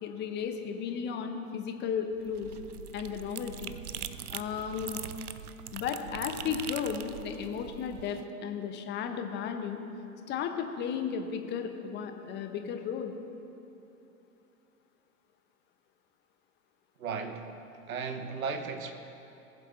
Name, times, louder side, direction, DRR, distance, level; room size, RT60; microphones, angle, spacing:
voice 1, 0.0-2.5 2.9-3.7 4.3-5.0 5.7-9.8 10.3-13.1, left 7 dB, 25° left, 6 dB, 0.9 m, -34 dB
sound 1, 2.1-8.2, right 9 dB, 85° right, 0.5 m, -42 dB
voice 2, 17.0-17.5 17.9-18.9, right 5 dB, 70° right, 8 dB, 1.2 m, -35 dB
19.0 x 7.7 x 3.8 m, 2.9 s
figure-of-eight pair, 100°, 44 cm